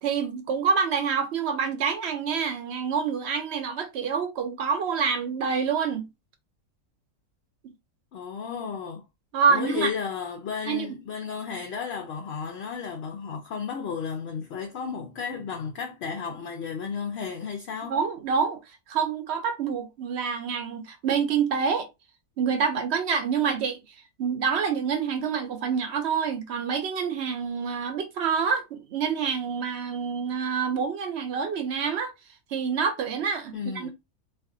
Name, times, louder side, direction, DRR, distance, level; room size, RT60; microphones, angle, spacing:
voice 1, 0.0-6.1 9.3-9.9 10.6-10.9 17.9-18.6 18.9-21.9 22.4-23.8 24.2-32.1 32.5-33.9, right 6 dB, 60° right, 0.7 m, -27 dB
voice 2, 8.1-9.0 9.5-18.0 33.5-33.9, left 6 dB, 65° left, 0.6 m, -33 dB
2.5 x 2.4 x 3.7 m
omnidirectional pair, 1.6 m